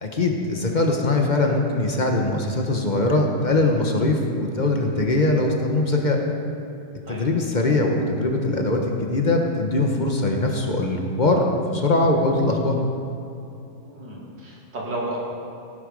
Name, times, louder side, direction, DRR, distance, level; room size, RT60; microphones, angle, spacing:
voice 1, 0.0-6.2 7.1-11.4 11.7-12.8, left 2 dB, 30° left, 2 dB, 1.0 m, -21 dB
voice 2, 13.8-15.2, right 1 dB, 65° right, -4 dB, 3.2 m, -33 dB
16.5 x 8.1 x 5.3 m, 2.8 s
omnidirectional pair, 2.0 m